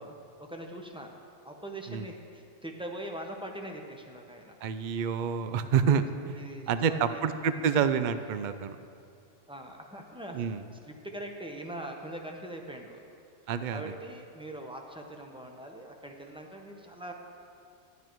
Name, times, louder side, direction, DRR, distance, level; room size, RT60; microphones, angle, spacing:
voice 1, 0.0-4.7 6.3-7.2 9.5-10.4 10.8-13.0 13.7-17.1, right 1 dB, 5° right, 2 dB, 0.8 m, -42 dB
voice 2, 4.6-6.4 6.7-8.8 10.3-10.6 13.5-13.9, right 7 dB, 55° right, 11 dB, 0.5 m, -28 dB
11.0 x 10.5 x 4.6 m, 2.4 s
omnidirectional pair, 1.3 m